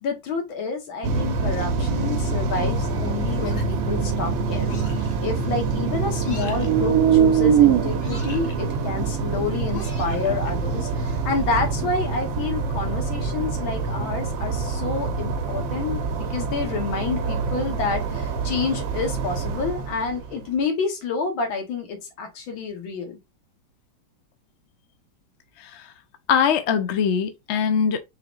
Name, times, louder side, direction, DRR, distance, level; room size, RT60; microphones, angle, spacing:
voice 1, 0.0-23.2, left 4 dB, 85° left, 2.0 m, -29 dB
sound 1, 1.0-20.5, right 4 dB, 85° right, 1.7 m, -26 dB
sound 2, 3.4-3.9 4.7-5.1 6.2-6.7 8.0-8.6 9.7-10.5, left 3 dB, 40° left, 0.9 m, -40 dB
sound 3, 3.7-6.1 6.4-11.7, right 9 dB, 70° right, 0.9 m, -23 dB
voice 2, 26.3-28.0, left 7 dB, 70° left, 0.6 m, -22 dB
4.7 x 3.6 x 2.4 m
omnidirectional pair, 2.1 m